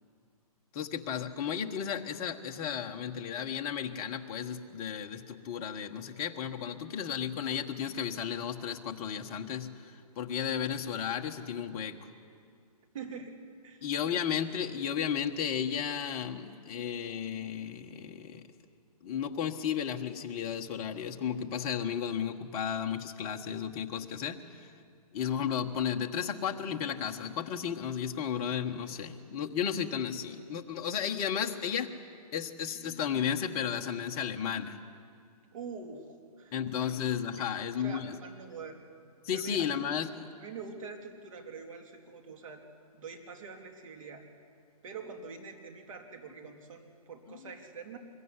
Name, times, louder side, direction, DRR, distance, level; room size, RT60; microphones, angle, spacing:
voice 1, 0.7-12.0 13.8-18.4 19.0-24.7 25.1-31.9 32.3-34.8 36.5-38.2 39.2-40.3, left 8 dB, 25° left, 3 dB, 1.3 m, -34 dB
voice 2, 12.9-13.4 13.6-13.8 14.1-14.2 35.5-36.6 37.4-38.8 39.3-39.6 40.4-42.6 42.9-44.2 44.8-48.0, right 5 dB, 55° right, 4 dB, 3.5 m, -45 dB
25.0 x 22.0 x 9.7 m, 2.3 s
hypercardioid pair, 155°, 20 cm